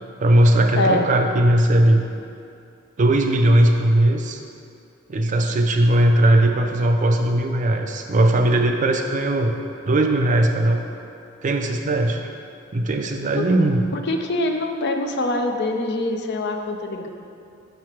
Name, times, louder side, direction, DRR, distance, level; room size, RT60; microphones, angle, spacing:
voice 1, 0.2-2.0 3.0-4.4 5.1-9.5 9.9-10.9 11.4-12.2 12.7-13.8, right 1 dB, 40° right, 4 dB, 0.4 m, -18 dB
voice 2, 0.8-1.1 13.4-13.6 13.9-17.1, left 2 dB, 55° left, 4 dB, 0.5 m, -24 dB
6.5 x 3.2 x 5.8 m, 2.5 s
head